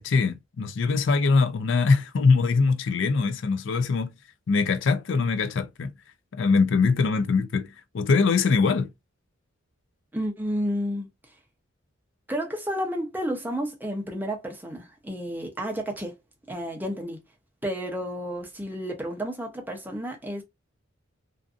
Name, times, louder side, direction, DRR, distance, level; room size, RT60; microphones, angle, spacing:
voice 1, 0.0-4.1 4.5-5.9 6.3-8.9, left 4 dB, 60° left, 0.4 m, -22 dB
voice 2, 10.1-11.1 12.3-16.1 16.5-17.2 17.6-20.4, equal, 10° right, 0.6 m, -31 dB
2.5 x 2.5 x 2.4 m
head